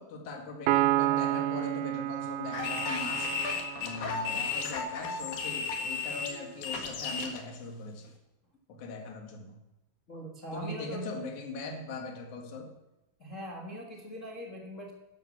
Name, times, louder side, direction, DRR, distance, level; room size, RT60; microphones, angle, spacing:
voice 1, 0.0-8.1 8.7-9.6 10.5-12.7, left 3 dB, 60° left, 3 dB, 3.2 m, -40 dB
Piano, 0.7-4.3, right 14 dB, 80° right, 1.8 m, -30 dB
sound 1, 2.5-7.4, left 5 dB, 85° left, 3.6 m, -34 dB
voice 2, 10.1-11.0 13.2-14.9, equal, 35° left, 0 dB, 1.3 m, -41 dB
12.0 x 10.5 x 7.3 m, 0.98 s
omnidirectional pair, 4.0 m